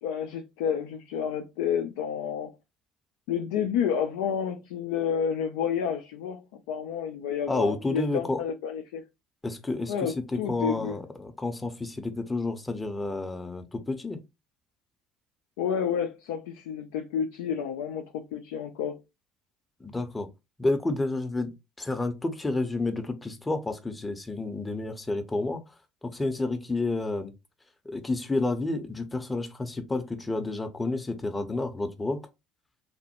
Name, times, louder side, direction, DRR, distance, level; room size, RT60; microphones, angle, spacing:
voice 1, 0.0-2.5 3.3-9.0 9.9-11.0 15.6-19.0, left 8 dB, 70° left, 0.3 m, -30 dB
voice 2, 7.5-8.4 9.4-14.2 19.8-20.3 20.6-25.6 26.0-27.3 27.8-32.2, left 2 dB, 15° left, 0.6 m, -30 dB
3.2 x 2.1 x 2.9 m
figure-of-eight pair, 60°, 0 cm